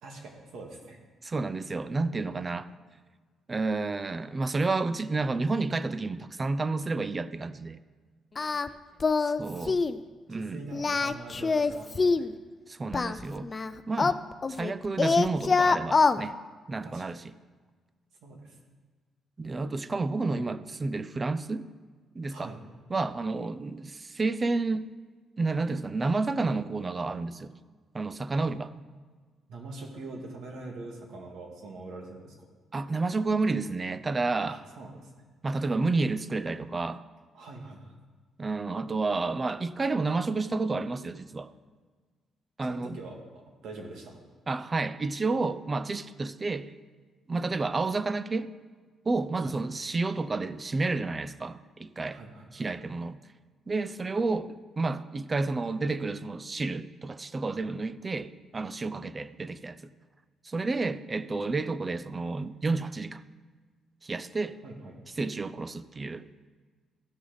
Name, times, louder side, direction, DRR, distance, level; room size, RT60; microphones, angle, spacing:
voice 1, 0.0-1.0 9.5-9.7 10.3-12.3 16.8-17.2 18.2-18.6 20.3-20.5 22.3-22.6 28.4-28.5 29.5-32.3 34.5-35.1 37.3-37.9 42.7-44.2 49.4-49.5 52.1-52.7 57.6-57.7 64.6-64.9, right 2 dB, 75° right, 0 dB, 2.1 m, -43 dB
voice 2, 1.2-2.7 3.5-7.8 9.4-9.8 10.3-10.6 12.7-13.5 13.9-14.2 14.5-16.4 16.7-17.3 19.4-21.7 22.1-22.5 22.9-24.9 25.4-27.5 27.9-28.7 32.7-34.6 35.4-37.0 38.4-41.5 42.6-43.0 44.5-46.7 47.3-48.5 49.1-52.2 52.5-53.2 53.7-59.9 60.4-63.2 64.0-64.6 65.2-66.3, right 3 dB, 30° right, 14 dB, 0.5 m, -30 dB
Singing, 8.4-8.7 9.0-9.4 9.7-10.0 10.7-12.3 12.9-14.7 15.0-16.2, left 4 dB, 35° left, 0.4 m, -25 dB
15.5 x 6.3 x 4.0 m, 1.5 s
cardioid pair, 90°, 0 cm